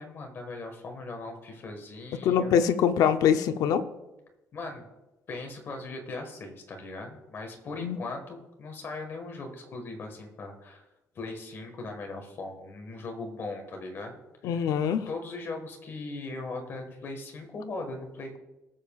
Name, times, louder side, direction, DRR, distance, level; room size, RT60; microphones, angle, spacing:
voice 1, 0.0-2.5 4.5-4.8 5.3-10.8 11.1-14.7 15.1-18.4, left 3 dB, 35° left, 3 dB, 1.5 m, -39 dB
voice 2, 2.2-3.8 7.8-8.0 14.4-15.0, left 8 dB, 75° left, 10 dB, 0.6 m, -23 dB
18.0 x 7.3 x 2.4 m, 1.0 s
cardioid pair, 175°, 6 cm